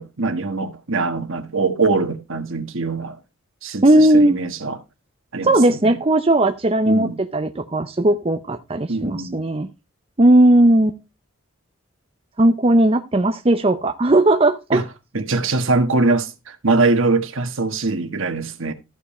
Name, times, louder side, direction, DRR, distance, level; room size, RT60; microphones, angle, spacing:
voice 1, 0.0-3.2 3.6-4.8 5.3-6.0 6.9-7.2 8.9-9.5 14.7-14.8 15.1-18.7, right 3 dB, 70° right, 1.4 m, -22 dB
voice 2, 3.8-4.4 5.4-9.7 10.2-11.0 12.4-14.8, right 1 dB, 25° right, 0.6 m, -16 dB
14.0 x 5.3 x 4.2 m
head